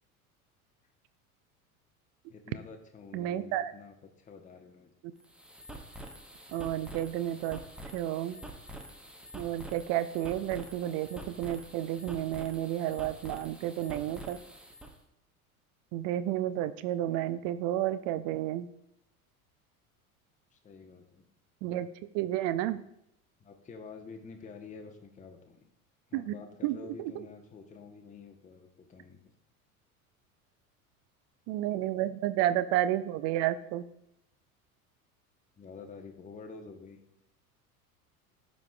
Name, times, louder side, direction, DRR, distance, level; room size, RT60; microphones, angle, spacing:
voice 1, 2.3-4.9 20.5-21.3 23.4-25.7 26.1-29.2 35.6-37.0, left 4 dB, 15° left, 3 dB, 1.0 m, -48 dB
voice 2, 3.1-3.7 6.5-7.6 7.9-8.4 9.3-14.4 15.9-18.7 21.6-21.9 22.1-22.8 26.1-26.3 26.6-26.8 27.2-27.3 31.5-33.8, right 13 dB, 35° right, 14 dB, 0.5 m, -31 dB
sound 1, 5.2-14.9, right 1 dB, ahead, 1.0 m, -47 dB
14.0 x 5.1 x 2.3 m, 0.79 s
figure-of-eight pair, 75°, 44 cm